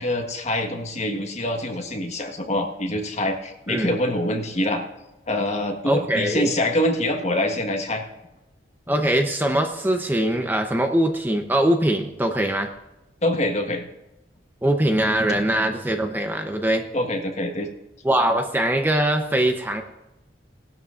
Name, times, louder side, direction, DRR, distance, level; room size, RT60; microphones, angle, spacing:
voice 1, 0.0-4.8 5.3-8.0 13.2-13.9 16.9-17.7, left 1 dB, 40° left, 3 dB, 1.5 m, -25 dB
voice 2, 5.8-6.5 8.9-12.7 14.6-16.8 18.0-19.8, right 1 dB, 10° right, 5 dB, 0.7 m, -22 dB
18.5 x 12.5 x 2.5 m, 0.97 s
head